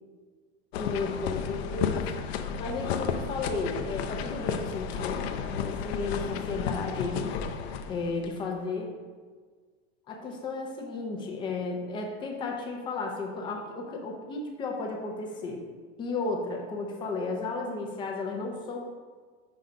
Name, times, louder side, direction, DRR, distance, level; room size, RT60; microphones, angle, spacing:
sound 1, 0.7-8.3, left 7 dB, 80° left, 0.6 m, -32 dB
voice 1, 0.7-7.6 7.9-8.9 10.1-15.6 16.0-18.8, left 3 dB, 15° left, 1 dB, 0.5 m, -34 dB
5.7 x 3.9 x 5.1 m, 1.5 s
supercardioid pair, 170°, 31 cm